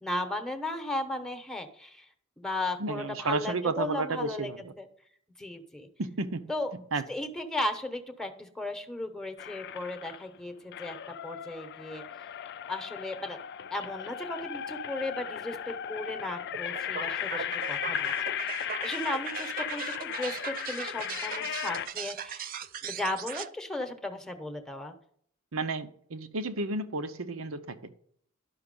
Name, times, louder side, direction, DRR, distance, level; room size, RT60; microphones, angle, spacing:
voice 1, 0.0-2.1 2.4-4.5 4.8-4.9 5.4-5.9 6.5-6.7 7.1-12.0 12.7-13.4 13.7-18.1 18.4-24.9, left 1 dB, 5° left, 6 dB, 0.9 m, -36 dB
voice 2, 2.8-4.7 6.0-6.4 6.9-7.0 25.5-27.9, right 3 dB, 85° right, 10 dB, 0.8 m, -32 dB
sound 1, 9.4-10.3 10.7-21.9, left 10 dB, 55° left, 0.4 m, -36 dB
sound 2, 16.5-23.5, right 8 dB, 45° right, 0.4 m, -39 dB
11.0 x 5.8 x 5.3 m, 0.64 s
head